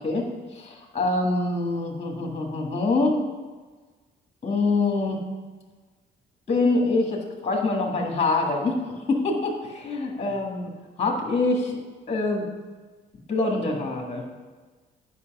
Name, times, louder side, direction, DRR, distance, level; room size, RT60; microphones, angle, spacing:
voice 1, 0.0-3.2 4.4-5.2 6.5-8.8 9.1-10.7 11.0-11.8 12.1-12.5 13.3-14.2, left 3 dB, 30° left, 0 dB, 1.7 m, -25 dB
8.2 x 5.4 x 5.9 m, 1.3 s
cardioid pair, 90°, 20 cm